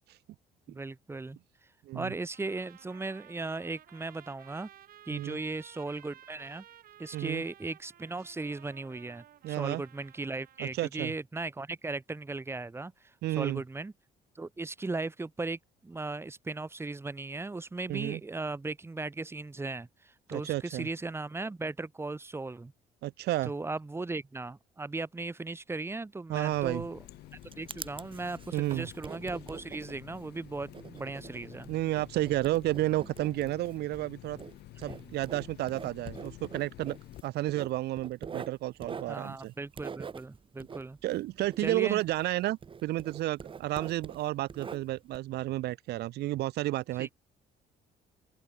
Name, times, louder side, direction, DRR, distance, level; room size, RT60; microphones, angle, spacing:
voice 1, 0.7-1.4 1.9-4.7 5.1-6.6 7.0-12.9 13.4-13.9 14.4-22.7 23.5-27.0 27.6-31.7 34.9-35.1 39.1-41.0 41.6-42.0 43.7-43.8 47.0-47.1, right 3 dB, 15° right, 1.9 m, -37 dB
sound 1, 2.3-10.7, right 11 dB, 60° right, 3.0 m, -55 dB
voice 2, 7.1-7.4 9.4-9.8 10.6-11.1 13.2-13.6 17.9-18.2 20.3-20.9 23.0-23.5 26.3-26.8 28.5-28.9 31.7-34.4 34.8-37.0 37.2-39.5 41.0-47.1, right 16 dB, 75° right, 1.3 m, -31 dB
Water tap faucet, 26.5-37.2, left 16 dB, 75° left, 2.8 m, -50 dB
Writing, 27.0-42.3 42.6-45.2, right 6 dB, 30° right, 1.5 m, -45 dB
open air
cardioid pair, 110°, 17 cm